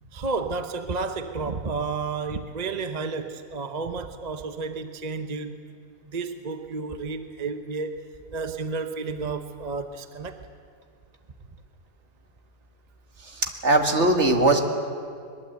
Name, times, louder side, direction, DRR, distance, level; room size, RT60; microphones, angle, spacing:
voice 1, 0.1-5.6 6.0-8.0 8.3-10.5, right 4 dB, 35° right, 8 dB, 0.8 m, -31 dB
voice 2, 13.2-14.6, right 2 dB, 50° right, 4 dB, 2.1 m, -20 dB
22.0 x 21.0 x 8.1 m, 2.3 s
omnidirectional pair, 1.5 m